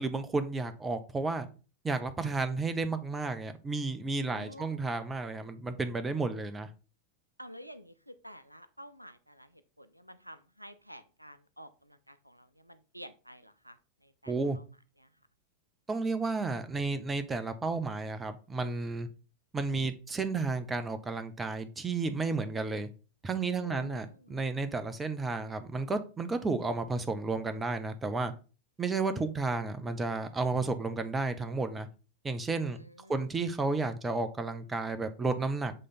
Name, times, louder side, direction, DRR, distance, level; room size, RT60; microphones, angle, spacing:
voice 1, 0.0-1.5 1.8-6.7 14.3-14.6 15.9-19.1 19.5-22.9 23.2-28.3 28.8-31.9 32.2-32.8 33.1-35.7, right 3 dB, 15° right, 0.7 m, -32 dB
voice 2, 4.3-4.8 7.4-14.6 15.0-15.1 23.6-24.4 32.7-33.3, equal, 90° right, 0.4 m, -50 dB
7.5 x 3.3 x 4.1 m
figure-of-eight pair, 90°, 0 cm